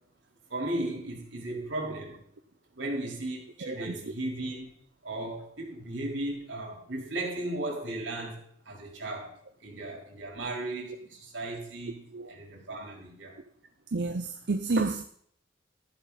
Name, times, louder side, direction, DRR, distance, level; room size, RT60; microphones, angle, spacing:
voice 1, 0.5-2.2 2.8-4.7 5.0-9.3 9.6-13.4, right 1 dB, 85° right, 4.6 m, -36 dB
voice 2, 3.6-4.0 12.1-12.3 13.9-15.0, right 3 dB, 65° right, 0.7 m, -30 dB
14.0 x 11.5 x 4.3 m
head